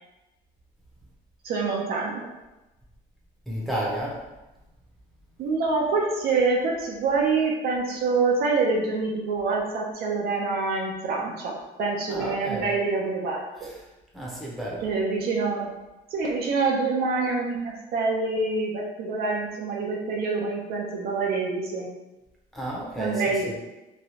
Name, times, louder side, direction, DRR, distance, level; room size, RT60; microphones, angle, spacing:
voice 1, 1.4-2.2 5.4-13.7 14.8-15.7 16.1-21.9 23.0-23.5, right 4 dB, 65° right, -1 dB, 0.6 m, -26 dB
voice 2, 3.5-4.2 12.1-12.7 13.6-13.7 14.1-14.9 22.5-23.5, right 1 dB, ahead, -5 dB, 0.8 m, -32 dB
3.1 x 2.3 x 2.8 m, 1.0 s
cardioid pair, 110°, 17 cm